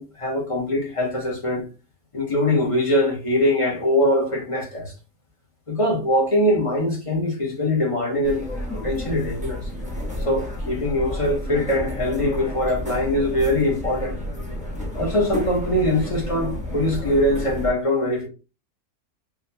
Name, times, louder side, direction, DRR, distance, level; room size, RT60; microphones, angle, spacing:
voice 1, 0.0-1.6 2.1-4.9 5.7-8.5 8.7-9.6 10.3-14.2 14.9-18.3, left 1 dB, 30° left, 0.7 m, -22 dB
sound 1, 8.2-17.7, left 1 dB, 5° right, 0.6 m, -31 dB
3.7 x 2.2 x 2.7 m
omnidirectional pair, 1.6 m